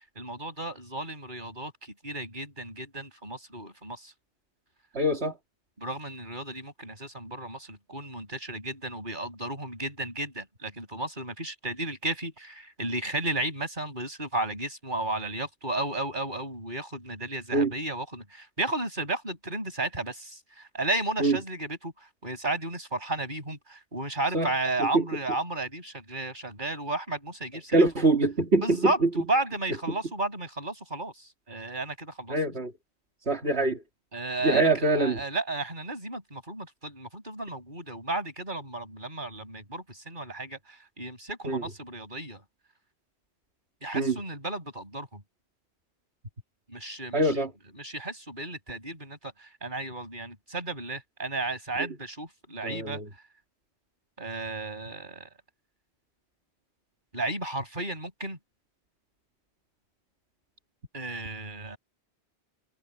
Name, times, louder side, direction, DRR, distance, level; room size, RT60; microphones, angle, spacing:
voice 1, 0.2-4.1 5.8-27.9 28.6-32.4 34.1-42.4 43.8-45.2 46.7-47.5 47.7-53.0 54.2-55.3 57.1-58.4 60.9-61.8, right 2 dB, 45° right, 7.4 m, -33 dB
voice 2, 4.9-5.3 17.5-17.7 21.2-21.4 24.3-24.5 24.9-25.0 27.7-29.1 32.3-32.7 33.3-33.8 34.4-35.2 41.4-41.6 43.9-44.2 47.1-47.5 52.6-53.0, right 2 dB, 75° right, 2.9 m, -24 dB
omnidirectional pair, 1.1 m